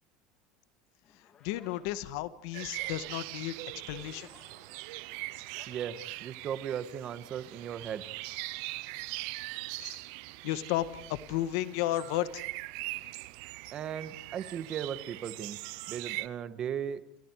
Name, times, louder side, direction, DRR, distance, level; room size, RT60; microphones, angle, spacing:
sound 1, 1.0-6.9, left 7 dB, 35° left, 3.4 m, -61 dB
voice 1, 1.4-4.3 9.8-10.0 10.4-12.4, left 14 dB, 75° left, 13 dB, 1.7 m, -33 dB
sound 2, 2.5-16.3, right 22 dB, 75° right, 0.9 m, -41 dB
voice 2, 5.7-8.1 13.7-15.6 15.9-17.0, right 8 dB, 40° right, 12 dB, 1.8 m, -37 dB
29.5 x 28.0 x 4.9 m, 0.69 s
supercardioid pair, 135°, 2 cm